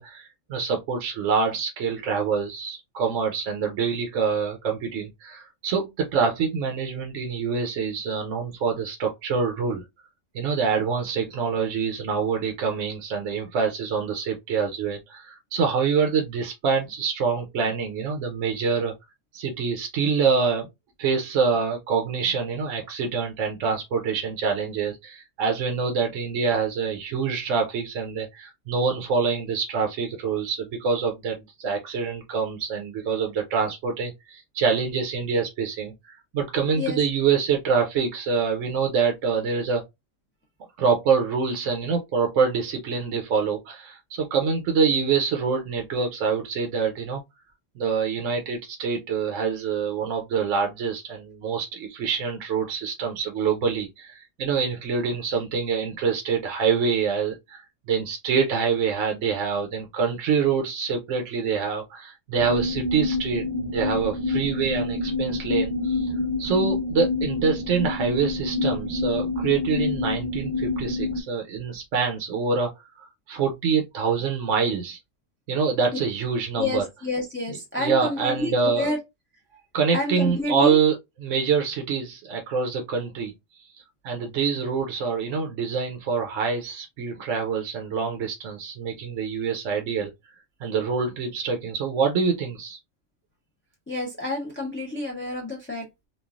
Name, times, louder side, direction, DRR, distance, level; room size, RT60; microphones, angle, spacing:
voice 1, 0.0-9.8 10.3-18.9 19.3-20.7 21.0-39.8 40.8-47.2 47.8-57.6 57.9-63.4 63.7-66.1 66.4-72.7 73.0-75.0 75.5-76.8 77.5-78.9 79.7-83.3 84.0-90.1 90.6-92.8, right 5 dB, 75° right, 1.0 m, -25 dB
sound 1, 62.3-71.2, left 3 dB, 35° left, 1.1 m, -27 dB
voice 2, 76.6-79.0 79.9-80.7 93.9-96.1, left 2 dB, 15° left, 0.4 m, -29 dB
3.1 x 2.3 x 2.3 m
omnidirectional pair, 1.3 m